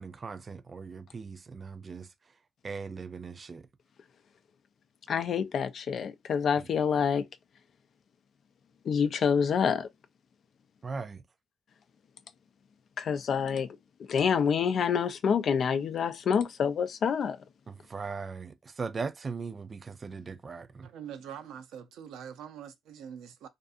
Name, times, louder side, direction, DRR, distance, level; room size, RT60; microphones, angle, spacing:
voice 1, 0.0-2.1 2.6-3.7 6.6-6.7 10.8-11.2 17.7-20.9, right 4 dB, 35° right, 0.4 m, -39 dB
voice 2, 5.1-7.3 8.9-9.9 13.0-13.7 14.1-17.4, left 7 dB, 60° left, 0.4 m, -27 dB
voice 3, 20.8-23.5, right 8 dB, 85° right, 0.5 m, -44 dB
2.5 x 2.5 x 2.4 m
cardioid pair, 90°, 0 cm